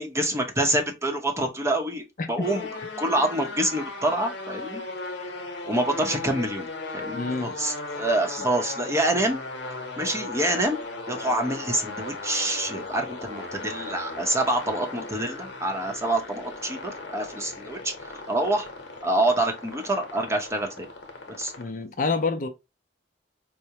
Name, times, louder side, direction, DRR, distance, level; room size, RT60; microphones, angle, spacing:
voice 1, 0.0-2.7 3.0-4.8 5.7-6.7 6.9-9.4 10.0-10.8 11.1-18.7 19.0-20.9 21.4-21.5, right 1 dB, 15° right, 0.7 m, -26 dB
voice 2, 2.2-2.5 7.1-7.5 21.6-22.5, left 4 dB, 45° left, 0.5 m, -27 dB
sound 1, 2.4-21.6, left 3 dB, 80° left, 0.8 m, -37 dB
4.6 x 2.1 x 2.7 m
head